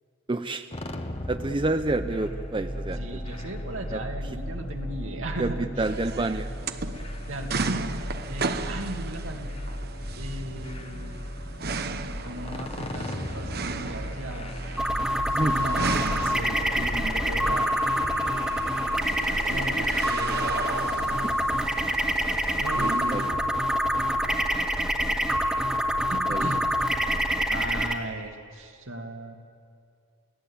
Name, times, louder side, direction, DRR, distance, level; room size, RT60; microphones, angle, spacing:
voice 1, 0.3-0.7 1.3-3.0 3.9-4.0 5.4-5.5 5.8-6.5 15.3-15.6 22.8-23.2 26.3-26.5, right 2 dB, 25° right, 8 dB, 0.6 m, -28 dB
sound 1, 0.7-17.6, equal, 30° left, 1.2 m, -36 dB
voice 2, 3.0-5.9 7.3-7.9 8.3-9.5 10.1-11.2 12.2-14.6 15.5-17.7 19.5-20.4 22.6-23.4 26.1-26.6 27.5-29.3, right 1 dB, 75° right, 3 dB, 2.3 m, -36 dB
sound 2, 5.8-23.3, right 4 dB, 50° right, 1.0 m, -36 dB
sound 3, 14.8-27.9, equal, 5° right, 1.7 m, -26 dB
29.0 x 17.5 x 8.6 m, 2.4 s
head